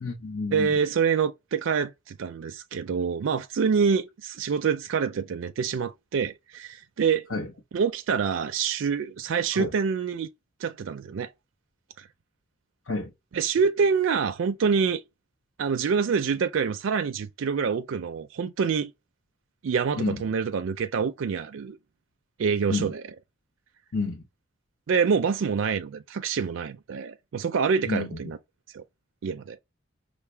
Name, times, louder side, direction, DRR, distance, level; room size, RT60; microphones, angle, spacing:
voice 1, 0.0-0.8 7.3-7.5 9.5-9.7 12.9-13.1 20.0-20.2 22.7-22.9 23.9-24.2 27.9-28.2, left 3 dB, 75° left, 1.0 m, -30 dB
voice 2, 0.5-7.3 7.7-10.3 10.6-11.3 12.0-12.1 13.3-15.0 15.6-18.9 19.6-21.8 22.4-23.2 24.9-28.4 28.8-28.9 29.2-29.6, right 6 dB, 75° right, 0.4 m, -26 dB
5.6 x 2.1 x 3.3 m
head